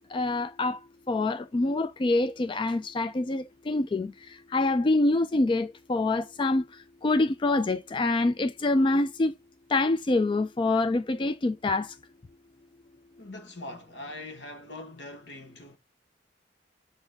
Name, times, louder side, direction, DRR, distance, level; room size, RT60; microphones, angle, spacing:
voice 1, 0.1-0.8 1.1-4.1 4.5-6.6 7.0-9.3 9.7-11.9, left 2 dB, 25° left, 0.3 m, -25 dB
voice 2, 13.2-15.8, left 2 dB, 70° left, 1.4 m, -42 dB
7.0 x 4.0 x 3.4 m
head